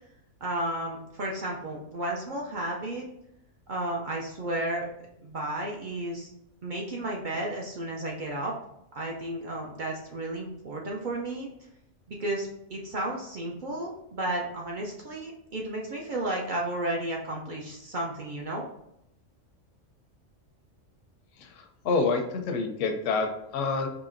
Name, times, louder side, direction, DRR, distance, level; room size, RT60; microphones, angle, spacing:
voice 1, 0.4-3.1 3.7-4.9 5.2-6.3 6.6-8.5 8.9-11.5 12.1-18.7, right 1 dB, 55° right, -2 dB, 0.6 m, -33 dB
voice 2, 21.4-23.9, left 4 dB, 80° left, 5 dB, 0.9 m, -28 dB
4.9 x 2.9 x 2.5 m, 0.79 s
omnidirectional pair, 1.3 m